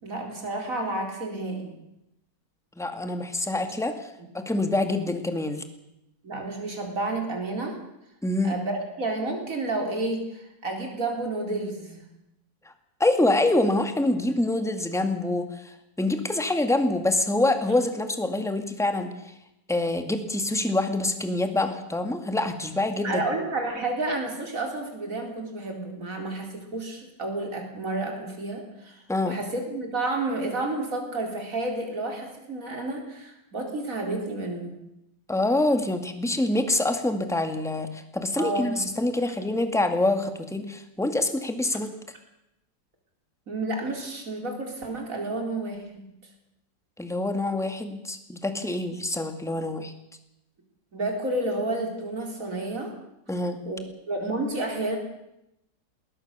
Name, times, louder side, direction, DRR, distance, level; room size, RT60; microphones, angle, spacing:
voice 1, 0.0-1.7 6.2-7.7 8.4-12.1 23.0-34.7 38.4-38.8 43.5-46.1 50.9-52.9 53.7-53.8 54.1-55.0, right 2 dB, 50° right, 2 dB, 4.4 m, -30 dB
voice 2, 2.8-5.6 8.2-8.6 13.0-19.1 19.7-23.2 29.1-29.4 35.3-41.9 47.0-49.9 53.3-53.6, left 2 dB, ahead, 7 dB, 1.8 m, -26 dB
21.0 x 18.5 x 6.8 m, 0.86 s
omnidirectional pair, 1.9 m